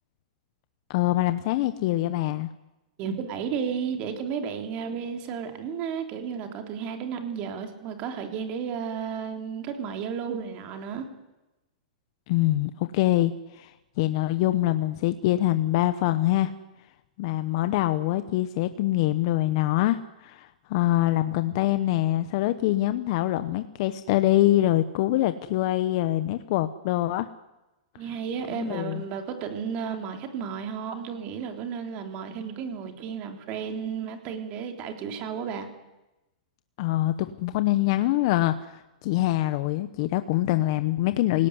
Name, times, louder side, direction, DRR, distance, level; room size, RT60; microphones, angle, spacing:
voice 1, 0.9-2.5 12.3-13.7 14.0-16.5 17.2-27.3 28.5-29.0 36.8-41.5, left 15 dB, 40° left, 11 dB, 1.1 m, -24 dB
voice 2, 3.0-11.1 28.0-35.7, right 7 dB, 30° right, 5 dB, 3.4 m, -33 dB
27.0 x 18.5 x 9.7 m, 1.0 s
supercardioid pair, 165°, 4 cm